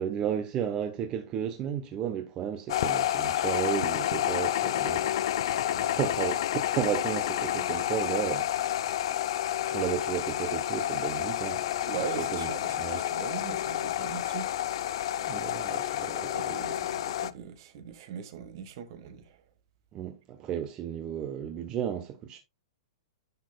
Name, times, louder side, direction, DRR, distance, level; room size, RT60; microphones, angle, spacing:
voice 1, 0.0-5.1 5.8-8.5 8.9-9.2 9.7-11.6 12.2-12.5 12.8-13.0 15.2-16.6 19.9-22.4, right 9 dB, 25° right, 0.9 m, -33 dB
sound 1, 2.7-17.3, left 12 dB, 60° left, 0.6 m, -30 dB
voice 2, 11.9-14.5 16.1-19.4, right 8 dB, 50° right, 1.6 m, -40 dB
10.5 x 6.6 x 2.3 m
hypercardioid pair, 150°, 3 cm